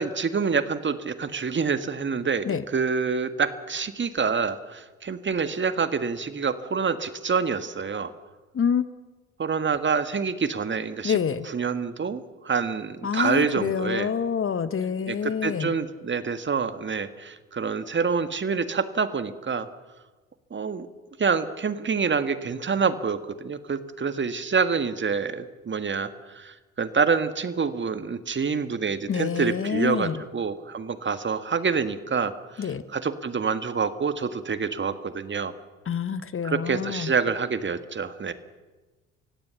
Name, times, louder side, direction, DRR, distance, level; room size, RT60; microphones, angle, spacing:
voice 1, 0.0-8.1 9.4-11.2 11.5-14.1 15.1-19.7 20.5-20.9 21.2-35.5 36.4-38.3, right 5 dB, 30° right, 12 dB, 1.7 m, -27 dB
voice 2, 11.0-11.4 13.0-15.7 29.1-30.2 32.6-32.8 35.9-37.1, left 7 dB, 35° left, 14 dB, 1.3 m, -27 dB
29.5 x 16.5 x 7.1 m, 1.2 s
hypercardioid pair, 60°, 37 cm